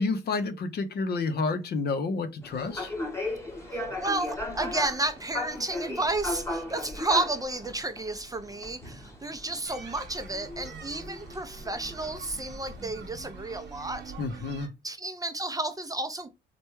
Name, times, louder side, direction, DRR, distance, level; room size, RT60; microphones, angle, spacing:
voice 1, 0.0-2.9 14.2-14.7, left 3 dB, 55° left, 0.6 m, -29 dB
sound 1, 2.4-12.9, left 2 dB, 15° left, 1.0 m, -37 dB
voice 2, 3.6-14.1 14.8-16.3, right 2 dB, 20° right, 0.5 m, -32 dB
sound 2, 9.7-14.7, right 4 dB, 60° right, 1.0 m, -45 dB
3.3 x 2.2 x 3.0 m
cardioid pair, 90°, 20 cm